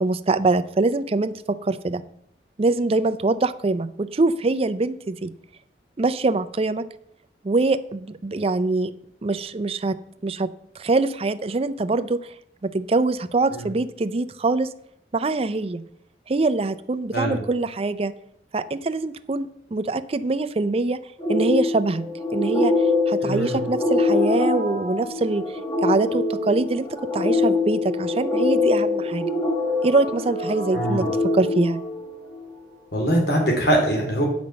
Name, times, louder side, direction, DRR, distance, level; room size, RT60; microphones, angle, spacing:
voice 1, 0.0-2.0 2.6-5.3 6.0-6.9 7.4-8.9 9.2-12.3 12.6-14.7 15.1-15.8 16.3-18.1 18.5-21.0 21.3-22.0 22.3-29.3 29.8-31.8, right 3 dB, 35° right, 12 dB, 0.5 m, -24 dB
sound 1, 21.2-32.5, left 3 dB, 25° left, 1.8 m, -24 dB
voice 2, 23.2-23.6 30.7-31.1 32.9-34.2, right 1 dB, 65° left, -1 dB, 2.8 m, -22 dB
8.7 x 5.2 x 7.5 m, 0.73 s
head